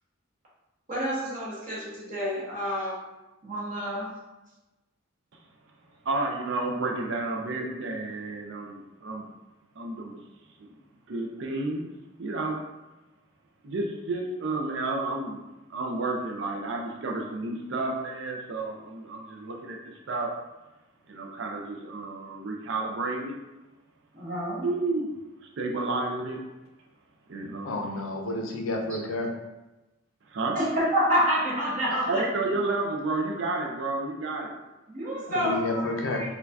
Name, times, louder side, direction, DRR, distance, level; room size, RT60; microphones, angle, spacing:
voice 1, 0.9-3.0 3.4-4.1 24.1-24.6 30.5-32.2 34.9-35.9, equal, 40° right, -7 dB, 1.2 m, -28 dB
voice 2, 6.0-9.3 9.8-10.2 10.6-10.7 11.1-11.9 12.2-12.6 13.6-15.4 15.7-20.3 21.1-23.4 24.6-25.2 25.6-26.4 27.3-27.9 30.3-30.6 32.1-34.6 35.1-35.4, right 2 dB, 60° right, 0 dB, 0.5 m, -31 dB
voice 3, 27.6-29.3 31.9-32.0 35.3-36.2, left 2 dB, 75° left, 1 dB, 0.5 m, -30 dB
4.1 x 2.3 x 2.7 m, 1.0 s
head